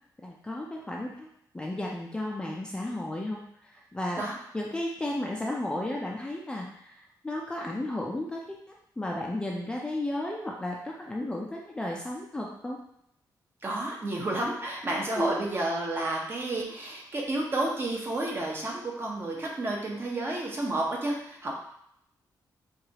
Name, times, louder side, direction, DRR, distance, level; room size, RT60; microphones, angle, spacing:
voice 1, 0.2-1.3 1.5-4.2 4.5-7.0 7.2-12.8 15.1-15.5, left 1 dB, 10° left, -2 dB, 0.4 m, -33 dB
voice 2, 13.6-21.5, right 2 dB, 30° right, -2 dB, 0.8 m, -31 dB
4.8 x 2.4 x 2.8 m, 0.73 s
wide cardioid pair, 140°, 7 cm